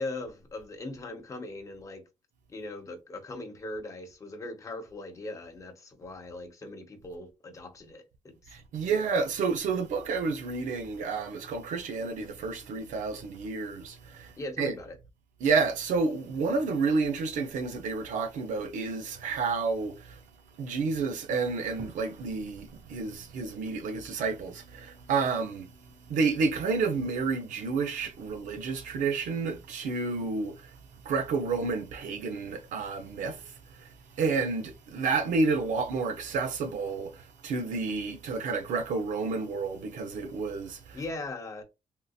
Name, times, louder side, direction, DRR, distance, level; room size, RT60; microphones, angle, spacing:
voice 1, 0.0-2.0 2.5-8.6 14.4-15.0 40.9-41.6, left 2 dB, 25° left, 0.7 m, -39 dB
voice 2, 8.5-14.3 14.6-14.7 15.4-20.2 20.6-25.7 26.1-30.7 31.0-33.9 34.2-41.0, right 4 dB, 85° right, 0.7 m, -30 dB
3.7 x 2.6 x 2.4 m
cardioid pair, 155°, 13 cm